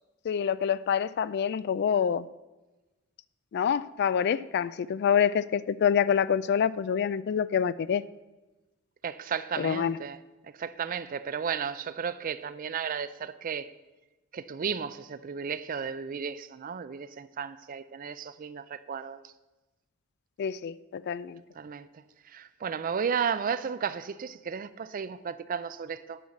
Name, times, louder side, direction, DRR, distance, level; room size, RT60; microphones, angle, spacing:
voice 1, 0.3-2.3 3.5-8.0 9.6-10.0 20.4-21.4, left 7 dB, 50° left, 0.3 m, -26 dB
voice 2, 9.0-10.2 10.6-13.7 14.3-19.3 21.6-21.9 22.3-26.2, right 6 dB, 40° right, 0.4 m, -34 dB
9.4 x 5.6 x 7.2 m
head